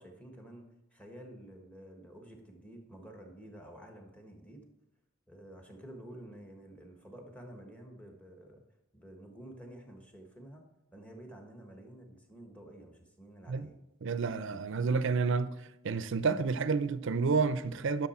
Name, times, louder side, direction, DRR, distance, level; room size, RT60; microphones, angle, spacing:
voice 1, 0.0-4.6 5.3-8.6 8.9-10.6 10.9-13.8, right 1 dB, 5° left, 1.4 m, -50 dB
voice 2, 14.0-15.6 15.8-18.1, right 4 dB, 65° right, 0.5 m, -30 dB
11.0 x 6.6 x 4.3 m
head